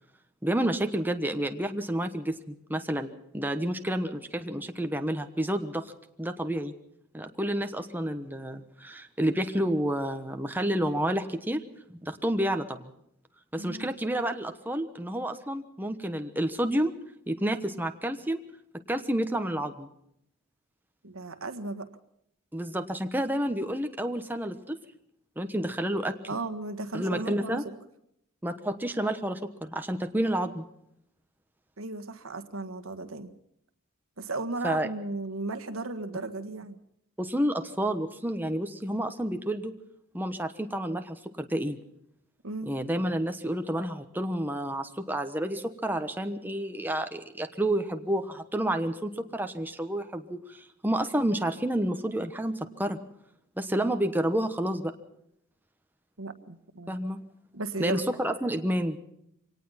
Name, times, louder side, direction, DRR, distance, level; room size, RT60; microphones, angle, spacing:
voice 1, 0.4-5.9 6.2-6.7 7.1-11.6 11.9-12.9 13.5-16.9 17.3-18.4 18.9-19.9 22.5-24.8 25.4-26.1 26.9-27.6 28.4-30.6 34.6-34.9 37.2-39.7 40.1-41.8 42.6-53.0 53.6-54.9 56.9-57.2 57.8-59.0, right 1 dB, 10° right, 6 dB, 1.2 m, -30 dB
voice 2, 13.6-13.9 21.0-21.9 26.3-27.6 31.8-33.3 34.2-36.8 42.4-42.7 56.2-57.0 57.5-58.1, right 2 dB, 70° right, 9 dB, 1.6 m, -35 dB
24.0 x 18.5 x 5.8 m, 0.76 s
head